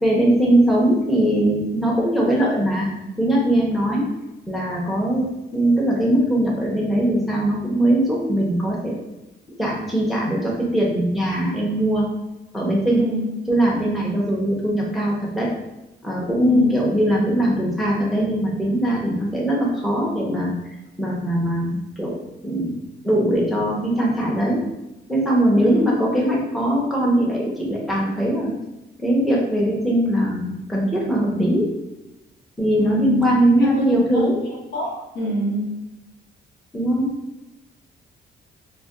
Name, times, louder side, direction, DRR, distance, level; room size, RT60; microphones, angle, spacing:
voice 1, 0.0-2.9 3.2-4.0 4.5-8.9 9.6-12.0 12.5-13.0 13.5-15.5 16.0-20.5 21.0-22.7 23.0-24.6 25.1-28.5 29.0-31.7 32.6-34.4 36.7-37.1, right 1 dB, ahead, -4 dB, 0.7 m, -20 dB
voice 2, 12.9-13.2 16.4-16.7 25.5-25.8 32.8-33.2 33.6-35.7, left 1 dB, 60° left, -4 dB, 1.0 m, -26 dB
2.4 x 2.1 x 3.6 m, 0.97 s
cardioid pair, 90°, 20 cm